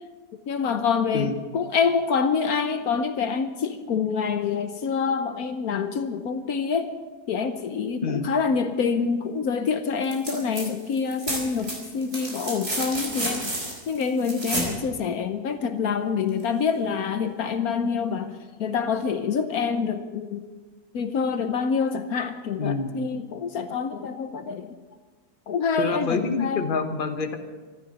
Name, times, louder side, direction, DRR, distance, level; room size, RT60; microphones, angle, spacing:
voice 1, 0.5-6.9 7.3-13.5 13.9-18.3 18.6-20.4 20.9-24.8 25.5-26.6, left 6 dB, 70° left, 8 dB, 1.3 m, -26 dB
sound 1, 10.0-10.7 10.9-14.8 16.4-16.5, right 1 dB, 45° right, 4.5 m, -31 dB
voice 2, 22.6-22.9 25.8-27.4, left 4 dB, 35° left, 6 dB, 1.2 m, -27 dB
25.0 x 12.5 x 4.2 m, 1.3 s
omnidirectional pair, 1.6 m